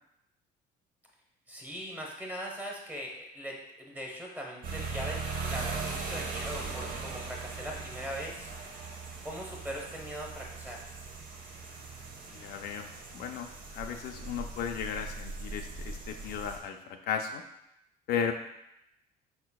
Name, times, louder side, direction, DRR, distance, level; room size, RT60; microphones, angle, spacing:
voice 1, 1.5-8.5 9.2-10.8, equal, 10° right, -1 dB, 1.0 m, -40 dB
sound 1, 4.6-16.6, right 4 dB, 55° right, 0.9 m, -39 dB
Gunshot gunfire, 5.5-12.1, right 2 dB, 80° right, 1.3 m, -54 dB
voice 2, 12.3-17.4 18.1-18.3, left 7 dB, 65° left, 4 dB, 0.4 m, -35 dB
5.0 x 4.2 x 2.3 m, 0.83 s
cardioid pair, 110°, 17 cm